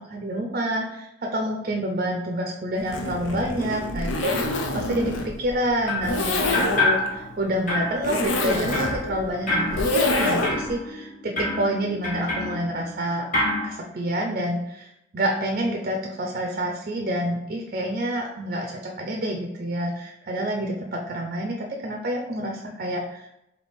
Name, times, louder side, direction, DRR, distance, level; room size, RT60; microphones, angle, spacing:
voice 1, 0.0-13.2 13.6-14.9 15.1-23.3, right 1 dB, 45° right, 1 dB, 0.5 m, -28 dB
Zipper (clothing), 2.8-10.7, left 2 dB, 75° left, 0.6 m, -27 dB
sound 1, 5.9-6.2 6.5-7.4 7.7-13.0 13.3-13.7, left 2 dB, 45° left, 1.2 m, -28 dB
3.5 x 2.8 x 4.2 m, 0.83 s
head